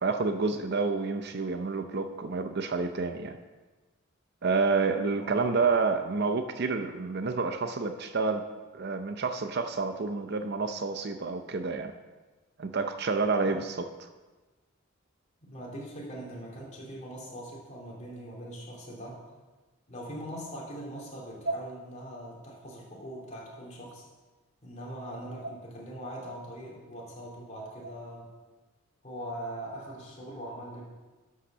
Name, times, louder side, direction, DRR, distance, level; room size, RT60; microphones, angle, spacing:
voice 1, 0.0-3.4 4.4-8.5 8.7-11.9 12.6-13.7 21.5-21.6, right 4 dB, 50° right, 7 dB, 0.6 m, -29 dB
voice 2, 15.4-19.2 19.9-24.1 24.6-28.3 29.0-30.9, equal, 35° left, -3 dB, 2.8 m, -41 dB
11.5 x 5.7 x 6.1 m, 1.3 s
head